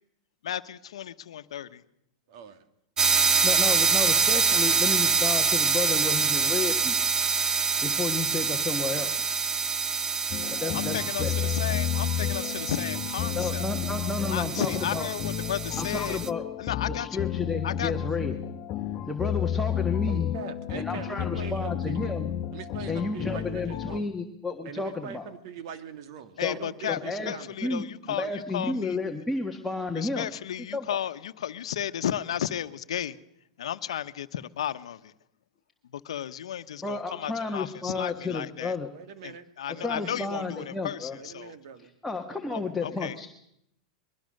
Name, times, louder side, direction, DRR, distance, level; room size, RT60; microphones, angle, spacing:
voice 1, 0.4-1.8 10.7-13.7 14.3-16.2 16.6-17.1 17.6-17.9 26.4-29.0 29.9-33.2 33.6-35.1 35.9-38.7 39.2-41.5 42.5-43.2, left 10 dB, 90° left, 1.0 m, -34 dB
voice 2, 2.3-2.6 20.1-22.1 22.5-24.1 24.6-27.8 38.9-40.2 41.1-41.9 42.3-42.7, right 7 dB, 60° right, 2.1 m, -42 dB
sound 1, 3.0-16.3, right 5 dB, 20° right, 0.7 m, -26 dB
voice 3, 3.4-7.0 7.8-9.2 10.5-11.3 13.3-15.1 15.8-16.4 16.9-18.4 19.0-20.3 20.7-22.3 22.9-25.3 26.4-26.6 26.9-30.3 30.7-31.0 36.8-38.9 39.8-41.2 42.0-43.3, left 3 dB, 5° left, 1.5 m, -32 dB
sound 2, 10.3-24.0, left 10 dB, 35° left, 1.2 m, -31 dB
22.0 x 20.0 x 6.6 m
supercardioid pair, 135°, 3 cm